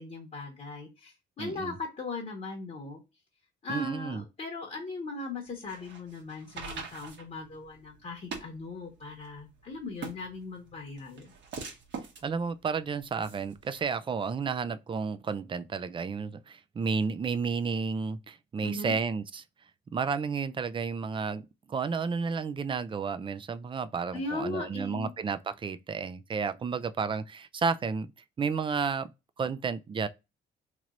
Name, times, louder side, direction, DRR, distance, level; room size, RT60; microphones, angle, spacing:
voice 1, 0.0-3.0 3.6-11.3 18.6-18.9 24.1-25.1, left 3 dB, 40° left, 1.0 m, -38 dB
voice 2, 1.4-1.7 3.7-4.2 12.2-19.4 19.9-28.1 28.4-29.1 29.4-30.1, right 5 dB, 25° right, 0.3 m, -32 dB
sound 1, 5.5-13.8, right 5 dB, 65° right, 1.2 m, -44 dB
3.0 x 2.9 x 2.4 m
cardioid pair, 90°, 20 cm